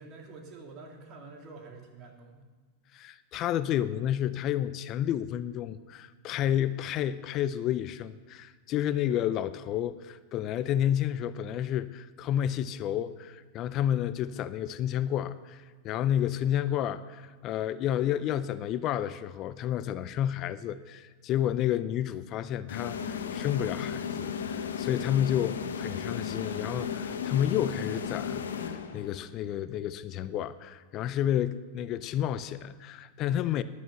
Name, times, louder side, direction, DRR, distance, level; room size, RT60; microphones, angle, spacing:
voice 1, 0.0-2.5 13.9-14.1 23.1-23.3, right 3 dB, 45° right, 1 dB, 2.7 m, -48 dB
voice 2, 2.9-33.6, left 11 dB, 45° left, 14 dB, 0.5 m, -30 dB
sound 1, 22.7-29.3, left 7 dB, 90° left, 1.0 m, -35 dB
11.5 x 9.2 x 6.8 m, 1.4 s
hypercardioid pair, 110°, 0 cm